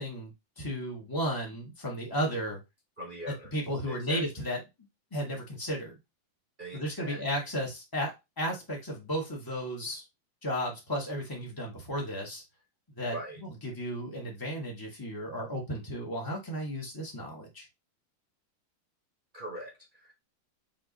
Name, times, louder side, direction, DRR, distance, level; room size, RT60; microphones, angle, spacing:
voice 1, 0.0-2.6 3.5-4.6 5.1-6.0 6.7-10.0 10.4-12.4 13.0-13.2 13.6-17.6, equal, 30° left, -1 dB, 0.4 m, -34 dB
voice 2, 3.0-3.5 3.9-4.2 6.6-7.2 13.1-13.4 19.3-20.2, right 1 dB, 45° right, 0 dB, 0.6 m, -42 dB
5.5 x 2.5 x 3.9 m, 0.22 s
omnidirectional pair, 2.3 m